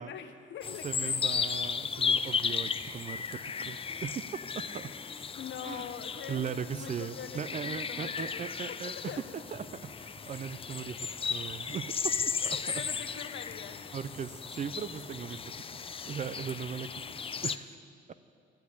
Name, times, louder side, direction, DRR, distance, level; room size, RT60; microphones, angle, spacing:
voice 1, 0.0-1.4 2.0-2.2 3.9-4.0 5.3-8.8 9.1-9.2 12.4-13.8, left 8 dB, 70° left, 9 dB, 0.9 m, -44 dB
sound 1, 0.6-17.6, left 6 dB, 30° left, 0.5 m, -35 dB
voice 2, 0.8-4.2 4.5-4.9 5.6-5.9 6.3-12.9 13.9-17.7, right 7 dB, 40° right, 15 dB, 0.4 m, -39 dB
sound 2, 9.5-9.6 9.9-10.0 10.2-10.4 10.8-11.1 11.5-11.7 12.2-12.3 12.5-12.6 12.8-13.1 13.5-13.7 14.1-14.4, right 3 dB, 20° right, 1.4 m, -52 dB
13.0 x 6.5 x 9.7 m, 2.4 s
cardioid pair, 90°, 20 cm